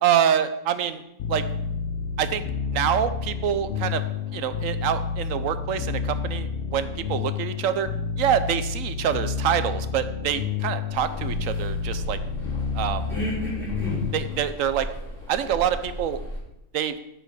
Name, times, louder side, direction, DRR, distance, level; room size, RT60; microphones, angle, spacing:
voice 1, 0.0-1.0 1.3-1.5 2.2-2.4 2.7-4.0 4.3-7.9 8.2-12.2 12.7-13.1 14.1-14.9 15.3-16.2 16.7-16.9, right 9 dB, 70° right, 11 dB, 1.0 m, -25 dB
sound 1, 1.2-14.5, left 5 dB, 60° left, 0.9 m, -30 dB
sound 2, 10.9-16.4, left 1 dB, ahead, 3.7 m, -34 dB
9.1 x 5.1 x 6.5 m, 0.89 s
omnidirectional pair, 1.5 m